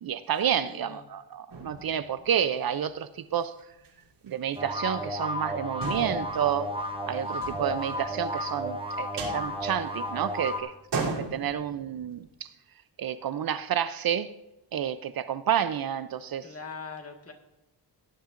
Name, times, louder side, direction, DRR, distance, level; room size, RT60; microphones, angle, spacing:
voice 1, 0.0-3.5 4.2-6.7 7.1-12.5 13.0-14.3 14.7-16.5, right 9 dB, 55° right, 0.5 m, -30 dB
voice 2, 0.7-1.0 16.4-17.3, left 5 dB, 35° left, 1.7 m, -41 dB
sound 1, 1.5-2.8 3.3-3.4 3.7-3.9 4.3-4.8 5.0-5.1 5.8-8.5 8.9-10.3 10.7-12.3, right 3 dB, 85° right, 3.3 m, -38 dB
sound 2, 4.6-10.6, equal, 10° right, 1.2 m, -33 dB
17.5 x 10.0 x 2.5 m
wide cardioid pair, 140°, 42 cm